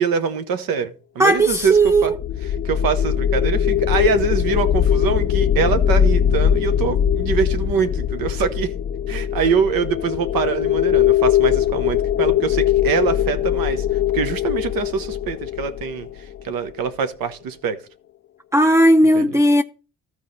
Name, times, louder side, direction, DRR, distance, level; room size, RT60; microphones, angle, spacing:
voice 1, 0.0-2.1 2.6-8.7 9.1-13.9 14.1-17.8 19.1-19.3, right 6 dB, 85° right, 1.0 m, -24 dB
voice 2, 1.2-2.1 18.5-19.6, right 1 dB, 10° right, 0.5 m, -15 dB
sound 1, 1.5-16.7, left 10 dB, 40° left, 0.4 m, -21 dB
13.5 x 4.6 x 4.0 m
supercardioid pair, 55°, 34 cm